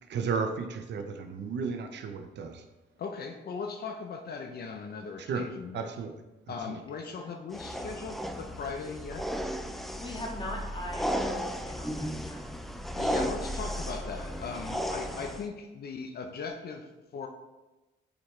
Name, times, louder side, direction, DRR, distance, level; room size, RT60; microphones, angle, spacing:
voice 1, 0.0-2.7 5.2-5.5 5.7-6.1 6.5-6.8, right 5 dB, 60° right, 6 dB, 0.8 m, -34 dB
voice 2, 3.0-5.9 6.5-9.2 12.9-17.3, left 5 dB, 55° left, 4 dB, 0.7 m, -39 dB
sound 1, 7.5-15.5, equal, ahead, 0.5 m, -34 dB
voice 3, 9.7-12.8, left 1 dB, 25° left, -2 dB, 1.9 m, -41 dB
8.1 x 4.5 x 3.3 m, 1.1 s
cardioid pair, 90°, 20 cm